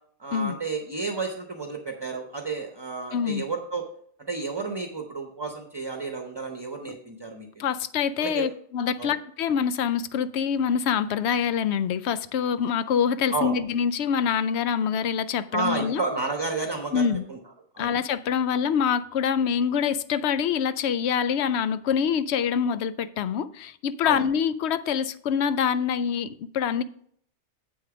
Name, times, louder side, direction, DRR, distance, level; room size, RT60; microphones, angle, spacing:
voice 1, 0.2-3.9 4.3-7.7 8.2-8.5 9.0-9.1 13.3-13.6 15.5-17.4 17.7-17.9 24.0-24.2, right 3 dB, 25° right, 0.8 m, -31 dB
voice 2, 3.1-3.4 7.6-16.0 16.9-17.2 17.8-26.8, left 7 dB, 75° left, 0.8 m, -25 dB
8.1 x 6.7 x 4.9 m
omnidirectional pair, 1.1 m